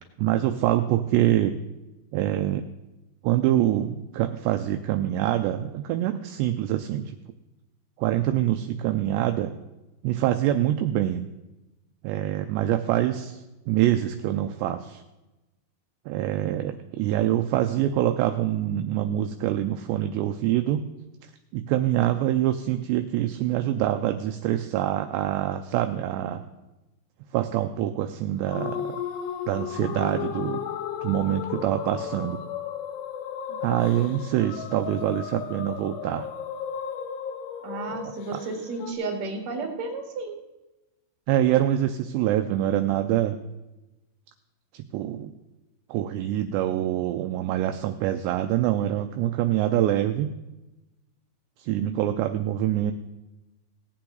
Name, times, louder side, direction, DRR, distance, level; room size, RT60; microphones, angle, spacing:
voice 1, 0.2-1.5 2.1-2.6 3.2-7.2 8.0-9.5 10.0-11.2 12.0-13.4 13.7-15.0 16.1-20.9 21.5-26.4 27.3-29.0 29.5-30.6 31.0-32.4 33.6-36.3 38.3-38.4 41.3-43.4 44.7-45.3 45.9-50.4 51.6-52.9, right 12 dB, 85° right, 7 dB, 2.5 m, -25 dB
sound 1, 28.5-38.9, left 9 dB, 85° left, 3.4 m, -35 dB
voice 2, 37.6-40.3 51.7-52.2, right 3 dB, 50° right, 2 dB, 2.4 m, -33 dB
18.5 x 8.7 x 3.9 m, 1.0 s
omnidirectional pair, 5.4 m